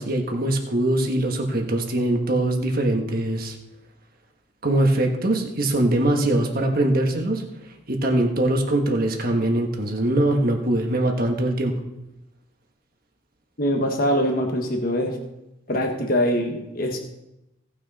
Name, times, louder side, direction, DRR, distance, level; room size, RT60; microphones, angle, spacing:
voice 1, 0.0-3.6 4.6-7.4 7.9-11.7, right 1 dB, 45° right, 3 dB, 1.4 m, -22 dB
voice 2, 13.6-15.2 15.7-17.0, equal, 45° left, 2 dB, 1.3 m, -23 dB
17.5 x 6.3 x 4.1 m, 0.92 s
head